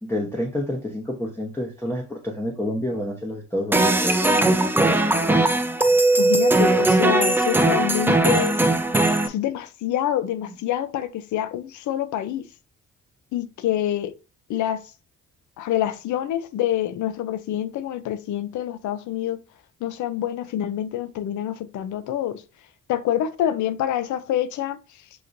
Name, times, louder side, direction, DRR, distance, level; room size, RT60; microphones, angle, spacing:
voice 1, 0.0-5.1, left 1 dB, 10° left, 0.9 m, -28 dB
sound 1, 3.7-9.3, right 2 dB, 5° right, 0.5 m, -19 dB
voice 2, 6.2-8.6 9.3-12.5 13.3-14.1 14.5-14.8 15.6-19.4 19.8-22.4 22.9-24.8, left 11 dB, 75° left, 0.6 m, -26 dB
6.5 x 2.9 x 2.6 m
cardioid pair, 90°, 30 cm